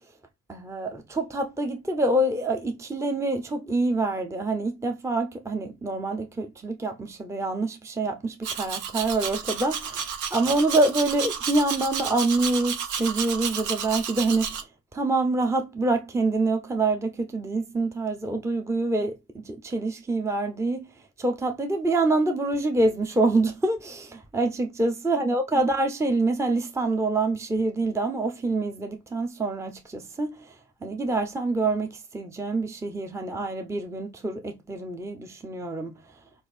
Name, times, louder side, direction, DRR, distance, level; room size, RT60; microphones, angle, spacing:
voice 1, 0.5-10.0 10.3-14.6 14.9-20.9 21.2-30.5 30.8-35.9, right 2 dB, 10° right, 0.6 m, -26 dB
Domestic sounds home sounds, 8.4-14.6, right 7 dB, 80° right, 1.0 m, -31 dB
6.1 x 2.6 x 3.3 m
cardioid pair, 90°, 30 cm